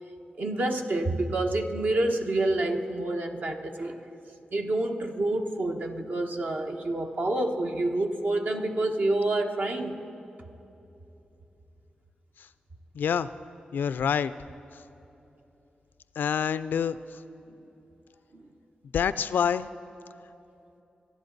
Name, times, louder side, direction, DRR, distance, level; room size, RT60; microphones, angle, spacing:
voice 1, 0.4-4.0 4.5-10.0 18.3-18.4, right 2 dB, 60° right, 3 dB, 1.3 m, -28 dB
voice 2, 12.9-13.3 13.7-14.3 16.2-17.2 18.9-19.7, left 7 dB, 85° left, 15 dB, 0.3 m, -27 dB
27.5 x 11.5 x 4.0 m, 2.9 s
cardioid pair, 50°, 3 cm